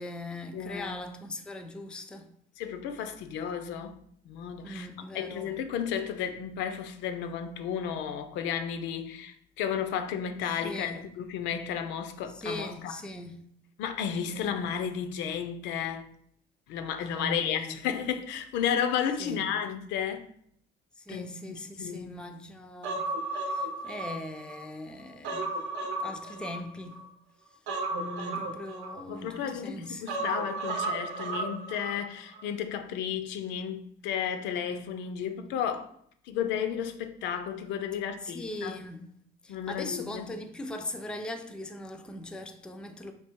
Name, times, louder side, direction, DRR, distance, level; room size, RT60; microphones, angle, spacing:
voice 1, 0.0-2.3 4.6-5.6 10.5-11.0 12.3-13.4 14.3-14.5 17.1-17.8 19.2-19.5 21.0-25.5 25.8-27.0 28.4-30.0 38.2-39.0 39.4-43.1, left 1 dB, 5° left, 0.3 m, -40 dB
voice 2, 0.5-1.1 2.6-4.9 5.1-12.9 13.8-16.1 16.7-20.3 21.1-21.3 21.8-22.2 27.9-28.6 29.1-35.9 36.3-38.8 39.5-40.2, left 8 dB, 80° left, 0.4 m, -33 dB
Human voice, 22.8-24.6 25.0-27.0 27.7-29.4 30.1-32.0 32.3-32.4, right 2 dB, 80° right, 0.7 m, -34 dB
3.3 x 2.8 x 4.4 m
cardioid pair, 140°, 18 cm